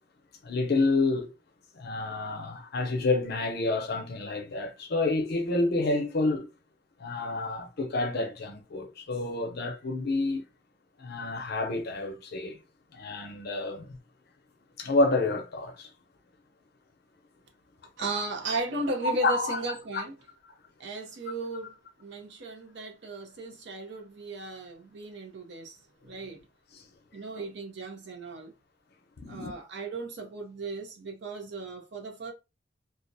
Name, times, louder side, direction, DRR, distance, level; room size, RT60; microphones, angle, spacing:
voice 1, 0.4-1.3 1.7-6.5 7.0-10.4 11.0-12.6 12.9-14.0 14.8-15.9 19.2-19.6 26.7-26.8 27.4-27.5 29.2-29.5, left 2 dB, 55° left, 0.6 m, -29 dB
voice 2, 18.0-20.2 20.8-26.5 27.1-28.5 29.3-32.3, right 2 dB, 65° right, 0.7 m, -36 dB
2.4 x 2.0 x 2.6 m
head